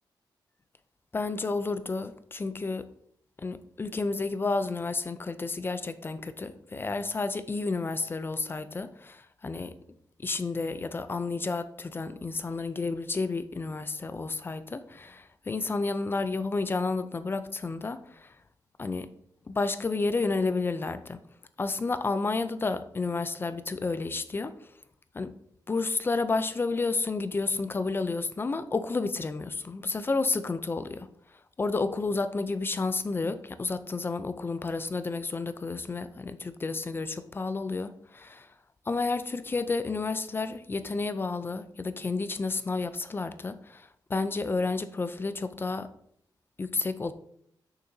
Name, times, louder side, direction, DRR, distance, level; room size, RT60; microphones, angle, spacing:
voice 1, 1.1-2.8 3.4-9.7 10.2-18.3 18.8-19.1 19.5-21.2 21.6-24.6 25.1-25.3 25.7-31.1 31.6-38.5 38.9-45.9 46.6-47.1, left 3 dB, 25° left, 12 dB, 0.4 m, -31 dB
8.5 x 6.6 x 2.7 m, 0.68 s
wide cardioid pair, 165°, 8 cm